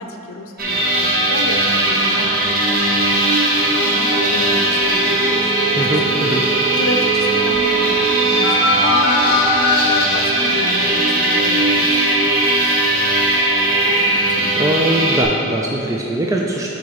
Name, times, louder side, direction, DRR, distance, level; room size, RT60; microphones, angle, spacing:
voice 1, 0.0-2.3 3.0-3.3 3.6-5.9 6.7-9.3 9.7-12.7 13.8-14.5, left 2 dB, 80° left, 3 dB, 0.6 m, -31 dB
sound 1, 0.6-15.2, right 1 dB, 45° right, 1.2 m, -18 dB
sound 2, 4.8-4.9 5.2-9.8, right 1 dB, 20° left, 1.3 m, -22 dB
voice 2, 5.8-6.5 14.6-16.8, right 1 dB, 15° right, -1 dB, 0.4 m, -21 dB
9.0 x 4.1 x 4.9 m, 2.9 s
head